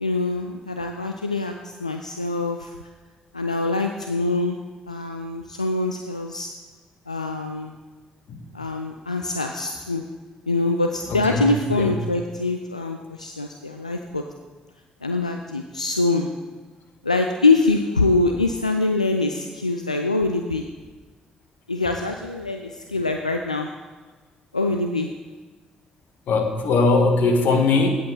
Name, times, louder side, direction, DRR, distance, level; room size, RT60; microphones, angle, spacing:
voice 1, 0.0-2.7 3.3-4.6 4.9-6.5 7.1-7.7 8.5-10.0 10.5-14.2 15.0-16.3 17.0-20.6 21.7-23.7 24.5-25.1, left 3 dB, 90° left, 5 dB, 0.4 m, -24 dB
voice 2, 11.1-11.4 11.7-11.9 26.3-27.9, left 3 dB, 55° left, 5 dB, 1.6 m, -20 dB
16.0 x 8.4 x 4.2 m, 1.4 s
figure-of-eight pair, 45°, 4 cm